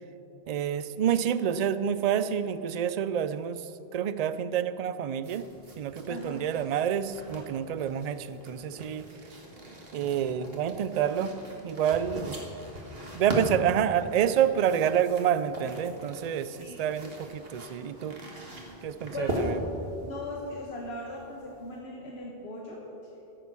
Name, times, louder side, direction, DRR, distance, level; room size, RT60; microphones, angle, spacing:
voice 1, 0.5-5.5 5.8-9.1 9.9-11.4 11.6-12.3 13.1-18.2 18.8-19.6, right 9 dB, 50° right, 13 dB, 0.5 m, -28 dB
sound 1, 5.2-21.8, equal, 70° right, 2.0 m, -40 dB
voice 2, 6.1-6.4 12.2-12.3 16.6-16.8 19.1-19.4 20.0-22.8, left 2 dB, 80° left, -2 dB, 1.6 m, -38 dB
13.5 x 9.1 x 6.1 m, 2.9 s
omnidirectional pair, 1.1 m